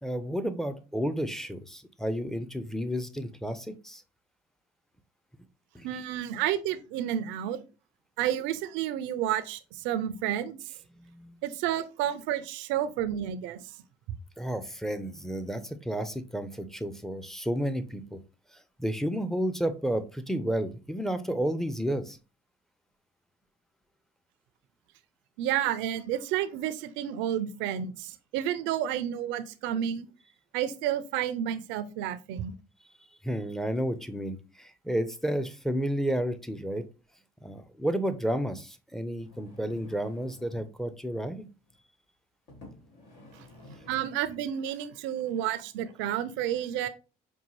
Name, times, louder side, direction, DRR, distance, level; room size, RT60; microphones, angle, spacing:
voice 1, 0.0-4.0 5.7-5.9 10.9-11.4 14.4-18.2 18.8-22.2 33.2-36.8 37.4-41.5, equal, ahead, 9 dB, 0.6 m, -31 dB
voice 2, 5.8-7.6 8.2-10.6 11.4-13.6 25.4-30.1 30.5-32.5 43.3-43.5 43.9-46.9, right 11 dB, 80° right, 12 dB, 0.5 m, -30 dB
sound 1, 39.1-40.8 41.6-41.8 42.5-44.5 45.1-45.2, left 2 dB, 70° left, 1.9 m, -51 dB
5.3 x 2.2 x 3.1 m, 0.33 s
supercardioid pair, 70°, 19 cm